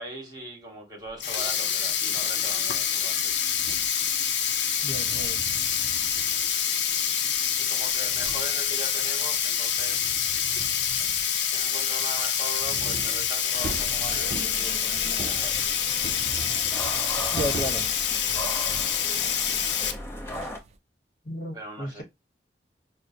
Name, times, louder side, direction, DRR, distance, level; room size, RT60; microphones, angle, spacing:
voice 1, 0.0-3.5 7.6-10.0 11.5-15.8 21.5-22.0, right 1 dB, 25° right, 1.4 m, -40 dB
Sink (filling or washing), 1.1-19.9, left 8 dB, 85° left, 0.6 m, -26 dB
sound 1, 3.5-8.9 9.2-20.8, right 3 dB, 40° right, 0.5 m, -42 dB
voice 2, 4.8-5.4 17.3-17.9 21.2-22.0, equal, 45° left, 1.2 m, -33 dB
sound 2, 13.6-20.6, equal, 15° left, 0.7 m, -38 dB
6.0 x 2.1 x 2.6 m
head